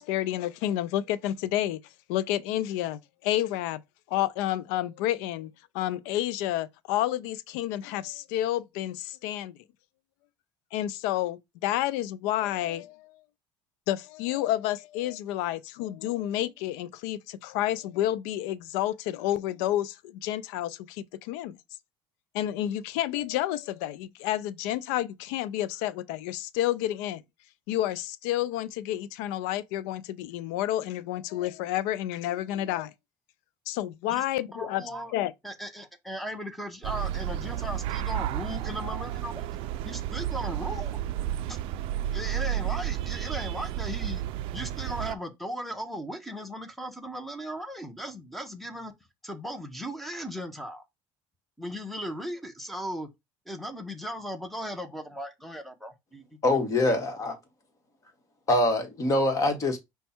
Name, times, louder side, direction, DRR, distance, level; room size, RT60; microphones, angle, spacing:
voice 1, 0.0-1.8 2.1-3.8 4.1-9.5 10.7-13.1 13.9-21.6 22.3-27.2 27.7-32.9 33.7-34.8 35.1-35.3, left 13 dB, 85° left, 0.4 m, -30 dB
voice 2, 34.5-35.1 35.4-41.0 41.5-41.6 42.1-44.2 44.5-48.9 49.2-50.8 51.6-53.1 53.5-56.4, equal, ahead, 0.9 m, -37 dB
sound 1, 36.8-45.1, right 12 dB, 70° right, 0.4 m, -32 dB
voice 3, 56.4-57.4 58.5-59.8, left 2 dB, 35° left, 1.4 m, -24 dB
5.3 x 2.3 x 4.3 m
cardioid pair, 115°, 10 cm